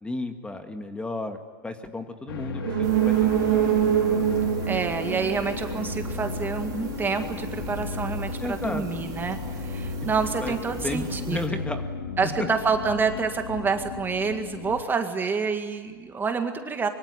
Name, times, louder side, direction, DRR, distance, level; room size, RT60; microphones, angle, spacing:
voice 1, 0.0-4.3 8.4-8.8 10.4-11.8 12.4-12.5, left 2 dB, 10° left, 7 dB, 2.0 m, -34 dB
sound 1, 2.3-14.8, left 5 dB, 80° left, 2.5 m, -35 dB
sound 2, 2.6-6.3 6.6-6.7, right 11 dB, 65° right, 3.7 m, -24 dB
sound 3, 2.8-11.5, right 5 dB, 30° right, 4.1 m, -40 dB
voice 2, 4.7-11.6 12.2-16.9, right 5 dB, 15° right, 6 dB, 1.9 m, -28 dB
24.5 x 23.5 x 9.7 m, 1.5 s
hypercardioid pair, 120°, 12 cm